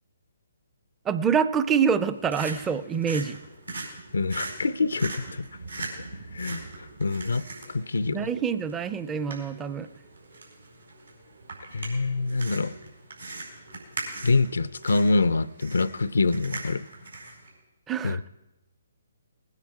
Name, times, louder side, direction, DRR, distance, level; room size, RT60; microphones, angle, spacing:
voice 1, 1.1-3.4 8.1-9.9 17.9-18.3, right 7 dB, 15° right, 13 dB, 0.5 m, -26 dB
sound 1, 1.9-17.5, right 3 dB, 90° right, 4.6 m, -41 dB
voice 2, 4.1-5.5 6.3-6.6 7.0-8.3 11.7-12.7 14.2-16.9 18.0-18.2, left 3 dB, 75° left, 16 dB, 0.5 m, -25 dB
19.5 x 9.8 x 4.8 m, 1.0 s
figure-of-eight pair, 140°, 0 cm